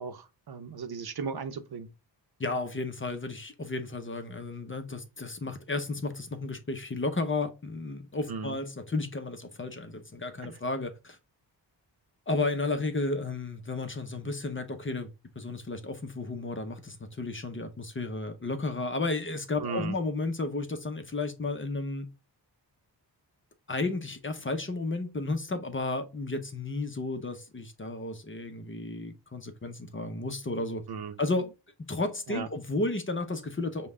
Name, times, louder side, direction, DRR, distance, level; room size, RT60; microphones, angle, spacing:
voice 1, 0.0-1.9 8.3-8.6 10.4-10.6 19.6-20.0 30.9-31.2 32.3-32.5, right 5 dB, 55° right, 0.7 m, -37 dB
voice 2, 2.4-11.2 12.3-15.1 15.4-22.1 23.7-30.8 31.2-31.5 31.8-33.9, left 3 dB, 30° left, 0.7 m, -33 dB
5.2 x 2.3 x 3.6 m
cardioid pair, 60°, 44 cm